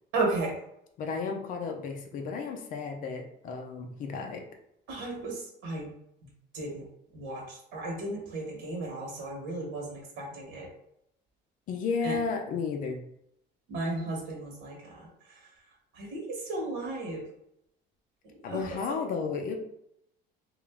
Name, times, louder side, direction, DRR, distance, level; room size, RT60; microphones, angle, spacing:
voice 1, 0.1-0.5 4.9-5.9 6.5-6.8 7.1-10.7 12.0-12.2 13.7-15.5 15.9-17.2 18.5-18.7, right 2 dB, 90° right, -1 dB, 1.3 m, -34 dB
voice 2, 1.0-4.4 11.7-13.0 18.4-19.6, left 5 dB, 45° left, 3 dB, 0.6 m, -33 dB
3.5 x 2.5 x 3.5 m, 0.77 s
cardioid pair, 165°, 19 cm